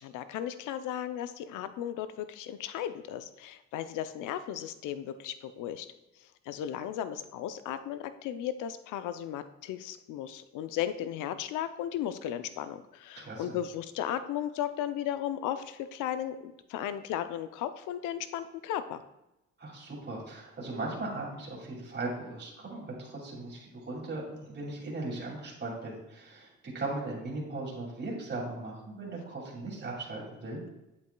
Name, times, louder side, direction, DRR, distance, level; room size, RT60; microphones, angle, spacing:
voice 1, 0.0-5.9 6.2-19.0, left 10 dB, 90° left, 11 dB, 0.5 m, -35 dB
voice 2, 13.2-13.6 19.6-30.6, right 2 dB, 35° right, -3 dB, 2.4 m, -38 dB
8.3 x 8.0 x 2.2 m, 0.92 s
cardioid pair, 90°, 30 cm